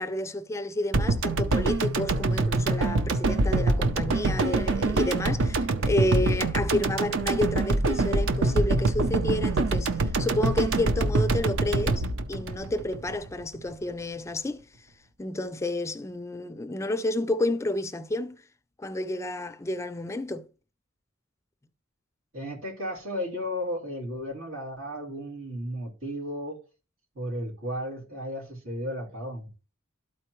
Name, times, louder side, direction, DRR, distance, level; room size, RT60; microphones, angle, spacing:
voice 1, 0.0-12.0 12.3-14.7 15.2-18.4 18.8-20.5, left 1 dB, 15° left, 0.3 m, -30 dB
sound 1, 0.9-13.3 13.6-13.7, right 2 dB, 65° right, 0.6 m, -25 dB
voice 2, 22.3-26.6 27.1-29.5, equal, 85° right, 3.2 m, -34 dB
12.5 x 4.3 x 3.0 m
head